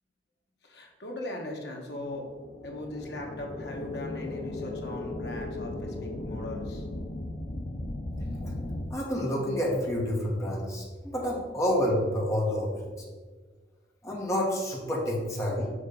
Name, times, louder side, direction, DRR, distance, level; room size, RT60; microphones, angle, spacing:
voice 1, 0.6-2.3 2.6-6.8, left 1 dB, 65° left, 0 dB, 1.3 m, -39 dB
sound 1, 2.1-8.9, left 2 dB, 40° left, 0.5 m, -36 dB
voice 2, 8.9-12.9 14.0-15.7, equal, 15° left, -4 dB, 1.5 m, -29 dB
6.7 x 3.6 x 5.2 m, 1.4 s
head